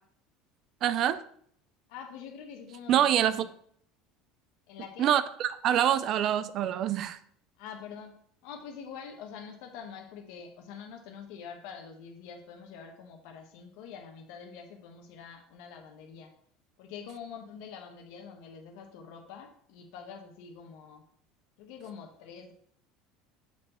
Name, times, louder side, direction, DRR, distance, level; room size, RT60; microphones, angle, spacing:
voice 1, 0.8-1.2 2.9-3.4 5.0-7.2, right 10 dB, 40° right, 15 dB, 0.4 m, -25 dB
voice 2, 1.9-3.5 4.7-5.1 7.6-8.2 8.4-16.3 16.8-21.0 21.6-22.5, left 7 dB, 70° left, 4 dB, 1.0 m, -45 dB
7.2 x 4.6 x 4.3 m, 0.63 s
cardioid pair, 155°, 0 cm